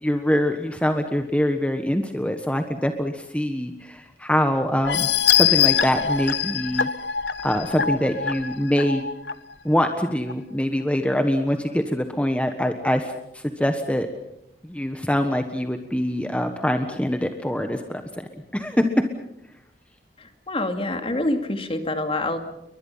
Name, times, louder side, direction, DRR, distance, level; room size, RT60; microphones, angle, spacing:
voice 1, 0.0-6.9 7.4-9.0 9.6-14.1 14.6-18.3 18.5-18.9, equal, 5° left, 6 dB, 1.4 m, -24 dB
sound 1, 4.8-9.3 9.8-9.9 10.3-10.4, left 9 dB, 80° left, 1.1 m, -23 dB
voice 2, 20.2-22.4, left 2 dB, 30° left, 7 dB, 2.5 m, -26 dB
29.5 x 23.0 x 5.7 m, 0.81 s
head